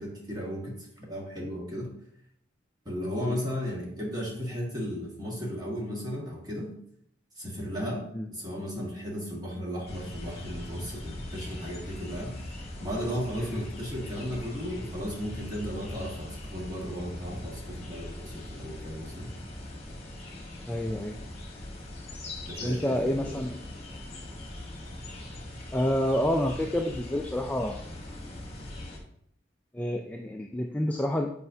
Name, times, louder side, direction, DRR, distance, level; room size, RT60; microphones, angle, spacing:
voice 1, 0.0-1.9 2.9-6.7 7.4-12.4 12.8-19.3 22.5-23.4, equal, 20° right, -3 dB, 1.7 m, -35 dB
sound 1, 9.9-29.0, left 1 dB, 35° left, 1.3 m, -41 dB
voice 2, 20.7-21.2 22.6-23.6 25.7-27.8 29.7-31.3, equal, 10° left, 2 dB, 0.3 m, -28 dB
7.6 x 5.2 x 2.7 m, 0.69 s
head